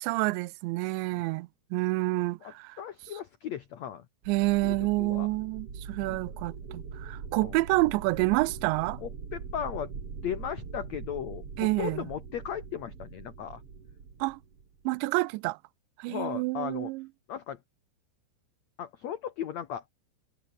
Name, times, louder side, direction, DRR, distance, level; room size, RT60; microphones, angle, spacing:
voice 1, 0.0-2.8 4.3-9.0 11.6-12.1 14.2-14.4 14.9-15.6 16.0-17.1, right 22 dB, 90° right, 2.9 m, -28 dB
voice 2, 2.4-4.0 4.6-5.3 6.0-6.2 7.3-7.5 9.0-9.9 10.2-13.6 16.1-16.9 17.3-17.6 18.8-19.8, left 9 dB, 85° left, 1.5 m, -36 dB
sound 1, 4.2-14.9, right 5 dB, 35° right, 3.5 m, -42 dB
omnidirectional pair, 5.0 m